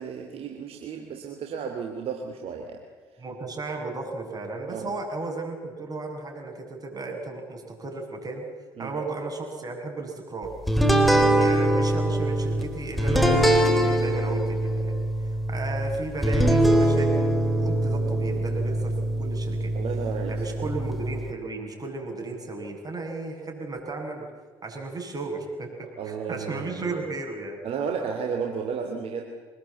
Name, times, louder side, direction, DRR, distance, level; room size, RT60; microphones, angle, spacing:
voice 1, 0.0-2.8 4.7-4.9 8.8-8.9 11.1-11.4 19.7-20.7 26.0-27.0 27.6-29.2, right 6 dB, 60° right, 2 dB, 3.0 m, -33 dB
voice 2, 3.2-8.4 8.8-10.5 11.1-14.9 15.2-19.7 20.3-24.3 24.6-27.6, right 3 dB, 35° right, 2 dB, 7.6 m, -34 dB
sound 1, 10.7-21.3, right 1 dB, ahead, 4.3 m, -23 dB
24.5 x 20.0 x 8.5 m, 1.4 s
hypercardioid pair, 55°, 11 cm